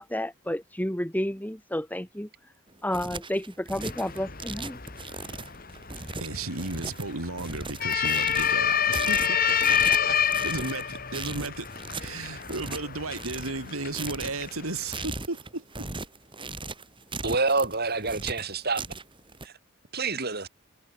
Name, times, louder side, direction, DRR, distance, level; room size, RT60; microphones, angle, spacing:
voice 1, 0.0-2.3 2.8-4.8, left 1 dB, 10° left, 2.3 m, -31 dB
sound 1, 2.7-19.5, right 3 dB, 25° right, 7.4 m, -38 dB
sound 2, 3.8-15.0, left 8 dB, 45° left, 2.8 m, -29 dB
voice 2, 6.2-10.2 10.4-11.7 12.0-15.9, right 3 dB, 85° right, 3.6 m, -34 dB
voice 3, 17.2-18.8 19.4-19.5 19.9-20.5, right 3 dB, 50° right, 7.4 m, -27 dB
head